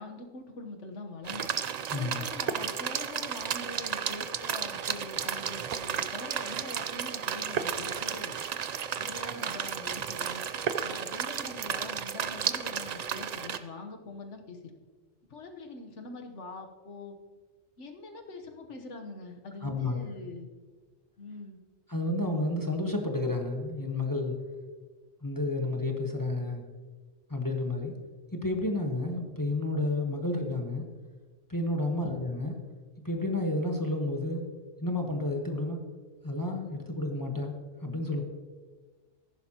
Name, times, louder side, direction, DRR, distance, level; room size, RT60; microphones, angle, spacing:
voice 1, 0.0-1.5 2.0-8.4 8.9-10.4 10.8-14.7 15.3-17.2 17.8-20.5 21.2-21.6 31.9-32.2, left 2 dB, 65° left, 4 dB, 1.4 m, -43 dB
sound 1, 1.3-13.6, right 7 dB, 85° right, 0.3 m, -33 dB
voice 2, 1.9-2.2 19.6-20.1 21.9-24.3 25.2-26.6 27.3-27.9 28.3-30.8 31.5-32.5 33.0-34.4 34.8-35.8 36.2-37.5 37.8-38.2, left 2 dB, 15° left, 2 dB, 1.0 m, -31 dB
14.5 x 11.0 x 2.9 m, 1.4 s
omnidirectional pair, 1.3 m